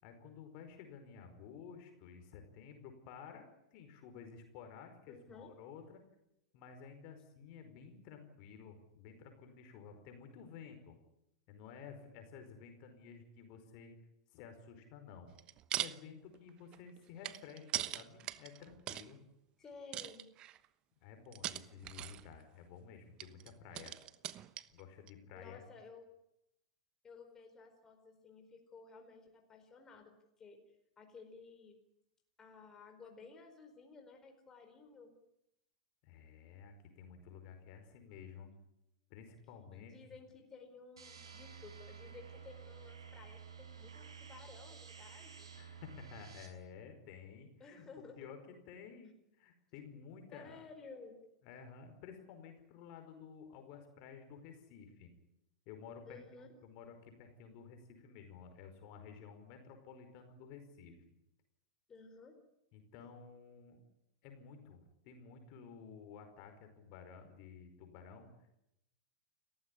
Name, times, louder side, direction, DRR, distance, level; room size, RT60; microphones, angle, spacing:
voice 1, 0.0-6.0 6.5-10.9 11.5-13.9 14.3-15.3 15.8-19.2 21.0-24.0 24.7-25.6 36.0-38.5 39.1-39.9 45.5-47.9 48.2-50.6 51.4-55.1 55.6-61.0 62.7-63.8 64.2-68.3, left 6 dB, 45° left, 6 dB, 4.9 m, -53 dB
voice 2, 5.1-5.5 19.6-20.3 25.3-26.0 27.0-30.6 31.0-31.8 32.4-35.1 39.7-45.5 47.6-48.3 50.3-51.2 56.1-56.5 61.9-62.4, left 4 dB, 20° left, 4 dB, 4.7 m, -55 dB
sound 1, 15.3-16.0 16.3-19.1 19.9-20.7 21.3-22.4 23.2-24.8 25.1-25.2, right 13 dB, 35° right, 1.1 m, -41 dB
sound 2, 41.0-46.5, right 7 dB, 70° right, 6.0 m, -52 dB
30.0 x 15.0 x 9.9 m, 0.84 s
figure-of-eight pair, 95°, 3 cm